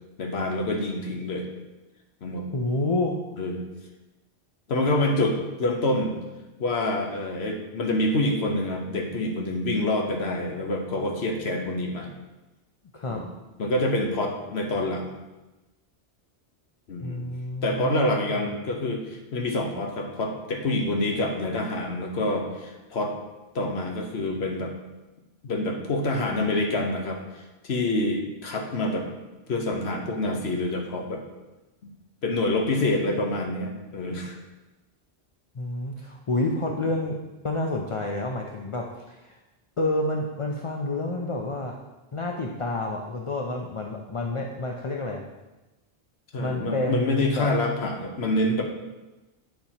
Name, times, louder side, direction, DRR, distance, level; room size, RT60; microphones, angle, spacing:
voice 1, 0.2-1.5 2.2-2.4 3.4-3.7 4.7-6.2 6.6-12.1 13.1-13.2 13.6-15.1 16.9-17.2 17.6-23.1 23.5-24.7 25.4-29.1 29.5-31.2 32.2-34.4 46.3-48.6, left 2 dB, 75° left, 2 dB, 1.2 m, -27 dB
voice 2, 2.5-3.2 12.9-13.2 17.0-18.4 35.5-37.2 37.4-39.4 39.8-41.8 42.1-45.2 46.4-47.5, left 2 dB, 40° left, 1 dB, 0.5 m, -29 dB
7.8 x 6.8 x 2.9 m, 1.1 s
omnidirectional pair, 1.1 m